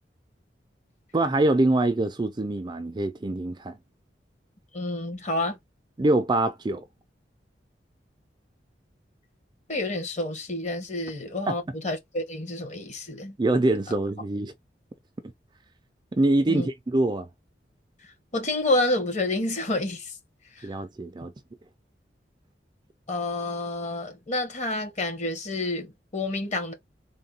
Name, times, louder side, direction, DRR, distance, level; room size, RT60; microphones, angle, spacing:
voice 1, 1.1-3.8 6.0-6.8 11.5-11.6 13.4-14.5 16.1-17.3 20.6-21.3, right 2 dB, 25° right, 0.4 m, -24 dB
voice 2, 4.7-5.6 9.7-13.4 16.5-16.7 18.3-20.2 20.6-20.7 23.1-26.7, left 2 dB, 40° left, 1.4 m, -29 dB
3.7 x 2.2 x 4.0 m
head